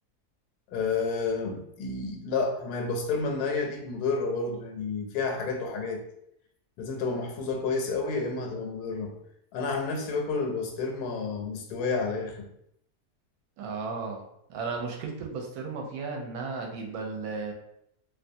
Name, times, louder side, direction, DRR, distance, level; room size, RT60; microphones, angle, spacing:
voice 1, 0.7-6.0 6.8-9.1 9.5-12.5, left 4 dB, 80° left, 2 dB, 1.1 m, -30 dB
voice 2, 13.6-14.2 14.5-17.5, right 4 dB, 75° right, 1 dB, 1.1 m, -34 dB
2.7 x 2.2 x 2.6 m, 0.75 s
omnidirectional pair, 1.7 m